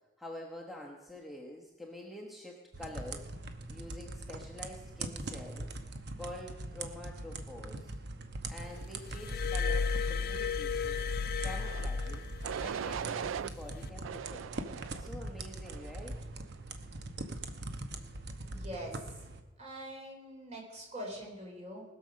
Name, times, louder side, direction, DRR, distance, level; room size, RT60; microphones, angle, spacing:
voice 1, 0.2-3.3 3.7-5.8 6.2-7.9 8.5-11.0 11.4-12.3 12.6-14.5 14.9-16.2, left 1 dB, ahead, -1 dB, 1.1 m, -47 dB
sound 1, 2.7-19.4, right 2 dB, 60° right, 1.0 m, -42 dB
Glass, 9.1-12.7 13.7-13.9, left 5 dB, 50° left, 0.5 m, -33 dB
sound 2, 11.5-11.9 12.4-13.5 14.0-15.1 15.6-16.1, right 8 dB, 75° right, 0.3 m, -39 dB
voice 2, 18.4-19.2 19.6-21.8, equal, 35° right, 0 dB, 3.9 m, -43 dB
19.5 x 6.9 x 6.4 m, 1.1 s
head